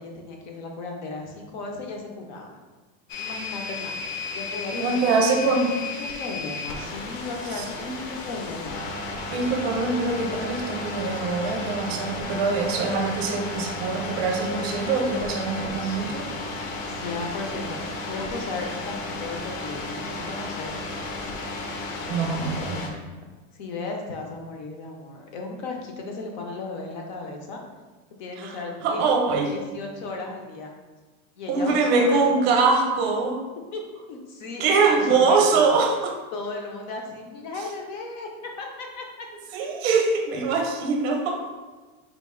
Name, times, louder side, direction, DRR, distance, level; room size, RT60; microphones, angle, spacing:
voice 1, 0.0-2.5 3.2-3.9 4.3-8.9 15.8-16.4 16.9-17.8 18.1-20.7 23.5-27.6 28.2-29.1 29.5-30.7 31.4-32.6 33.7-33.8 34.1-35.5 36.3-38.3 38.6-39.3, left 3 dB, 35° left, 2 dB, 0.4 m, -35 dB
sound 1, 3.1-22.9, left 3 dB, 70° left, 0.8 m, -33 dB
voice 2, 4.7-5.8 7.6-8.1 9.3-16.3 22.1-23.0 28.4-28.6 28.8-29.5 31.5-33.4 34.6-36.2 39.5-41.4, right 4 dB, 50° right, 3 dB, 0.6 m, -23 dB
4.0 x 2.4 x 3.5 m, 1.3 s
supercardioid pair, 180°, 40 cm